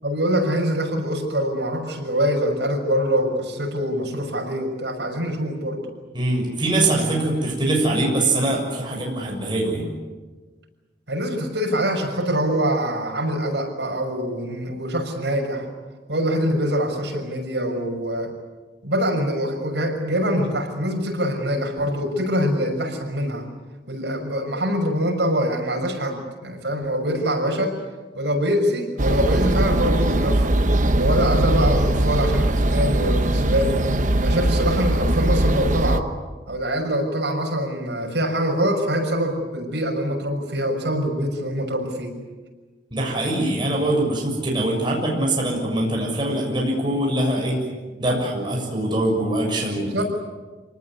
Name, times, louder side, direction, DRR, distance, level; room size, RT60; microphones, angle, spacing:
voice 1, 0.0-5.8 11.1-15.7 16.1-18.3 18.8-23.5 23.9-27.8 28.1-30.6 30.9-33.9 34.2-36.1 36.5-42.2 49.9-50.0, equal, 75° right, 2 dB, 6.4 m, -24 dB
voice 2, 6.1-9.9 42.9-47.6 48.0-50.0, right 1 dB, 25° right, -2 dB, 6.9 m, -23 dB
sound 1, 29.0-36.0, right 1 dB, 45° right, 1.2 m, -20 dB
27.5 x 19.0 x 9.8 m, 1.3 s
head